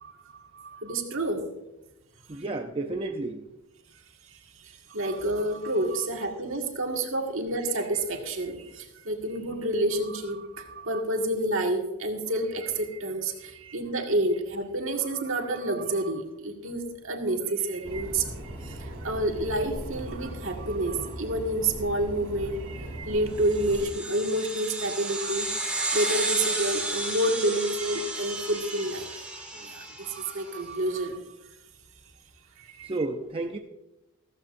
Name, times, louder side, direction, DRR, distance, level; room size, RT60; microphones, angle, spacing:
voice 1, 0.0-1.4 4.9-29.2 29.5-31.2 32.6-32.9, right 1 dB, 60° right, 2 dB, 2.0 m, -29 dB
voice 2, 2.3-3.5 32.8-33.6, right 2 dB, 25° right, 3 dB, 0.7 m, -31 dB
sound 1, 17.8-23.9, equal, 90° right, 3.1 m, -38 dB
sound 2, 23.5-30.3, right 2 dB, 5° right, 2.4 m, -32 dB
15.0 x 15.0 x 2.6 m, 0.93 s
head